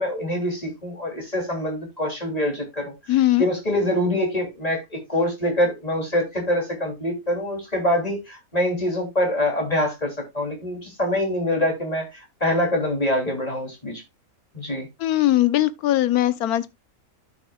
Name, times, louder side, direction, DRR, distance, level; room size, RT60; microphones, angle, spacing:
voice 1, 0.0-14.0 14.5-14.9, left 1 dB, 25° left, 3.0 m, -25 dB
voice 2, 3.1-3.5 15.0-16.7, left 14 dB, 85° left, 1.2 m, -20 dB
13.0 x 6.0 x 2.3 m
omnidirectional pair, 1.5 m